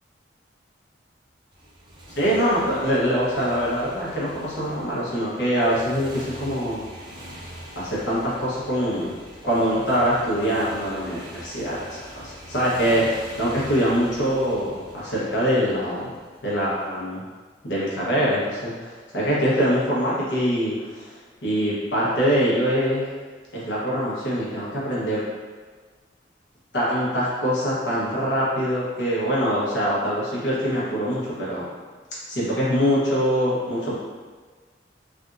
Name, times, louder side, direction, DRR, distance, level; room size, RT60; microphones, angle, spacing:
Motorcycle, 1.5-16.7, equal, 25° right, 0.5 m, -43 dB
voice 1, 2.2-6.8 7.7-9.1 9.4-16.1 16.4-17.2 17.6-21.2 21.4-23.1 23.5-25.2 26.7-31.7 32.3-34.0, equal, 80° left, -7 dB, 1.1 m, -24 dB
3.4 x 2.5 x 2.5 m, 1.4 s
head